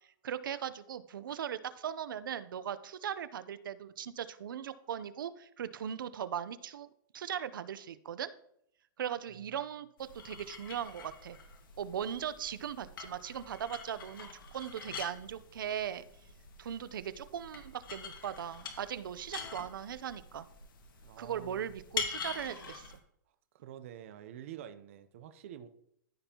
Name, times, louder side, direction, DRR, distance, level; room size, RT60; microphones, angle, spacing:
voice 1, 0.2-6.9 7.1-8.3 9.0-11.4 11.8-16.1 16.6-20.5 21.2-22.9, right 9 dB, 75° right, 14 dB, 0.7 m, -39 dB
sound 1, 10.0-23.0, left 6 dB, 75° left, 1.9 m, -45 dB
voice 2, 21.0-21.7 23.5-25.7, right 10 dB, 40° right, 10 dB, 0.7 m, -48 dB
14.5 x 5.4 x 2.9 m, 0.73 s
hypercardioid pair, 175°, 11 cm